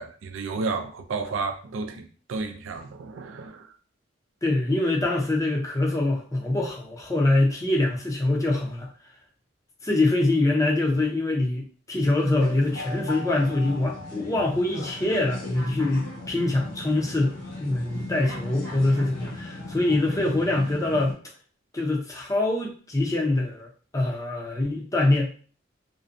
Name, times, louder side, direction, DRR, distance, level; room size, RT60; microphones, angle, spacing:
voice 1, 0.0-3.7, right 4 dB, 90° right, 0.4 m, -32 dB
voice 2, 4.4-8.9 9.8-21.1 21.7-25.3, left 2 dB, 15° left, 0.5 m, -24 dB
sound 1, 12.1-21.1, left 2 dB, 90° left, 1.0 m, -37 dB
2.5 x 2.1 x 2.5 m
head